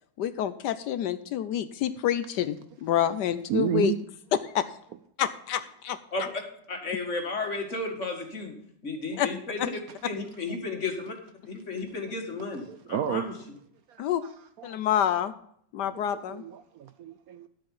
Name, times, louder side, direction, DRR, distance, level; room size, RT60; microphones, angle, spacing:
voice 1, 0.2-3.9 4.4-4.6 5.2-6.0 9.2-9.3 14.0-14.2 14.6-15.3 15.7-16.4, left 10 dB, 75° left, 13 dB, 1.2 m, -27 dB
voice 2, 3.5-4.0 9.1-9.2 12.7-13.2 13.9-14.3 14.6-14.8 16.1-17.5, right 10 dB, 70° right, 11 dB, 0.9 m, -31 dB
voice 3, 6.1-6.4 6.7-8.5 8.8-9.6 10.0-11.2 11.5-13.3, left 3 dB, 40° left, 3 dB, 2.3 m, -33 dB
12.0 x 7.9 x 5.5 m, 0.68 s
omnidirectional pair, 1.9 m